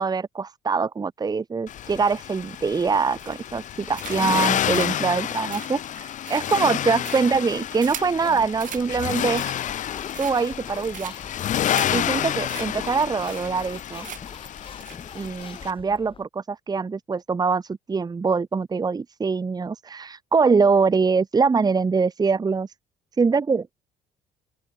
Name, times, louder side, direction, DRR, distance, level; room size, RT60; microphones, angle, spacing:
voice 1, 0.0-9.5 10.2-11.1 11.9-14.1 15.1-22.7 23.2-23.7, right 5 dB, 25° right, 1.3 m, -23 dB
Accelerating revving vroom, 1.7-15.7, left 11 dB, 50° left, 0.6 m, -29 dB
sound 1, 3.2-3.6 3.9-4.4 4.7-8.2 8.6-8.9 9.2-9.8 10.1-10.6 10.9-11.3 11.7-11.9 12.2-12.3 12.5-12.7 12.9-13.0 13.3-13.7 14.0-14.4 14.8-15.0, right 10 dB, 50° right, 1.4 m, -39 dB
sound 2, 7.5-16.2, left 5 dB, 30° left, 3.0 m, -43 dB
open air
cardioid pair, 110°, 17 cm